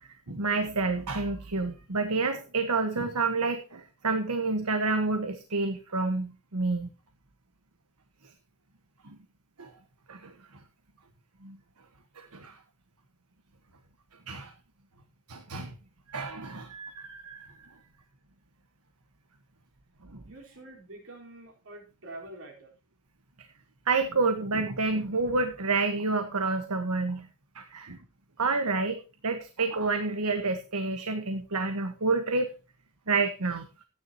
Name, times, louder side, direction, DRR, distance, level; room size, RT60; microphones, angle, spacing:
voice 1, 0.0-6.9 9.0-9.2 9.6-9.7 10.1-10.3 11.4-11.6 12.1-12.6 14.3-14.5 15.3-15.7 16.1-17.7 20.0-20.2 23.9-27.3 27.5-28.0 28.4-32.5 33.1-33.7, right 3 dB, 85° right, 6 dB, 1.4 m, -29 dB
voice 2, 20.2-22.7, right 2 dB, 65° right, 0 dB, 4.3 m, -46 dB
15.0 x 10.0 x 2.9 m, 0.32 s
head